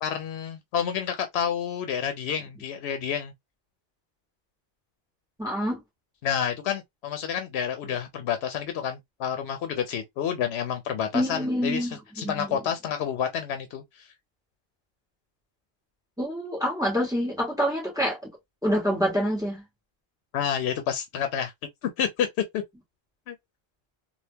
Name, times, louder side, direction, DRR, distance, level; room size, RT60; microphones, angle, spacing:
voice 1, 0.0-3.3 6.2-14.0 20.3-21.5 22.0-22.3 22.5-22.6 23.3-23.4, left 8 dB, 90° left, 0.8 m, -29 dB
voice 2, 5.4-5.8 11.1-12.6 16.2-18.2 18.6-19.6, equal, 5° right, 1.3 m, -27 dB
3.4 x 2.3 x 2.8 m
omnidirectional pair, 1.1 m